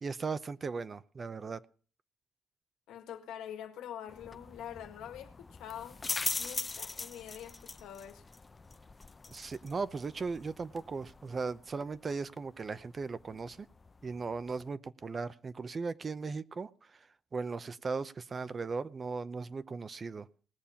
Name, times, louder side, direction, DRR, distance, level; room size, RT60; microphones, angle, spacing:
voice 1, 0.0-1.6 9.3-13.7 14.0-17.1 17.3-20.3, right 4 dB, 35° right, 0.7 m, -37 dB
voice 2, 2.9-6.0 6.4-8.2, left 10 dB, 90° left, 1.8 m, -45 dB
sound 1, 4.1-14.7, left 3 dB, 25° left, 0.6 m, -42 dB
19.0 x 6.9 x 5.7 m
cardioid pair, 90°, 0 cm